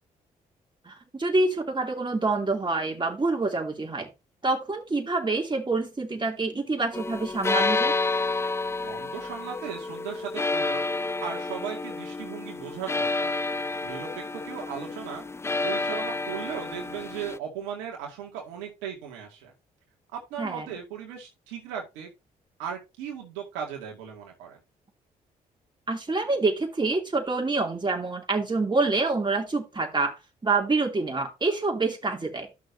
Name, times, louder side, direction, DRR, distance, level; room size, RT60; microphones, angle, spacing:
voice 1, 0.8-4.1 4.4-7.9 20.4-20.7 25.9-30.1 30.4-32.5, right 3 dB, 25° right, 2 dB, 2.7 m, -26 dB
sound 1, 6.9-17.4, left 3 dB, 15° left, 0.4 m, -29 dB
voice 2, 8.8-13.3 13.8-15.3 15.6-19.5 20.1-22.1 22.6-24.6, right 8 dB, 85° right, 1 dB, 2.2 m, -37 dB
11.5 x 6.3 x 2.7 m, 0.25 s
hypercardioid pair, 45°, 18 cm